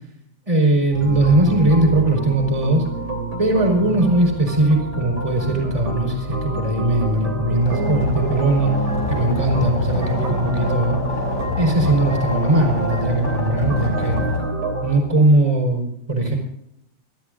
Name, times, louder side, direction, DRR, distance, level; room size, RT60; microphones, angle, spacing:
voice 1, 0.4-2.8 3.4-8.7 9.1-11.0 11.6-14.2 14.8-16.4, right 2 dB, 10° right, 2 dB, 4.3 m, -19 dB
sound 1, 0.9-15.0, right 1 dB, 30° right, 3.8 m, -27 dB
sound 2, 7.6-14.4, left 1 dB, 55° left, 7.0 m, -27 dB
29.0 x 13.0 x 2.6 m, 0.77 s
omnidirectional pair, 3.6 m